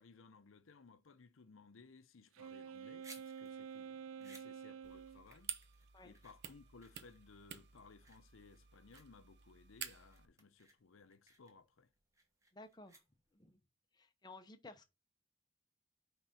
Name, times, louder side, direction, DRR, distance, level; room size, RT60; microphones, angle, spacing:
voice 1, 0.0-5.6 6.0-11.9, left 4 dB, 80° left, 0.6 m, -61 dB
Wind instrument woodwind instrument, 2.3-5.2, right 7 dB, 90° right, 0.3 m, -49 dB
sound 1, 2.7-13.5, right 2 dB, 15° right, 1.2 m, -63 dB
sound 2, 4.8-10.3, right 9 dB, 55° right, 0.8 m, -51 dB
voice 2, 12.5-13.0 13.3-13.6 13.9-14.8, left 2 dB, 20° left, 0.7 m, -55 dB
5.7 x 3.9 x 5.5 m
head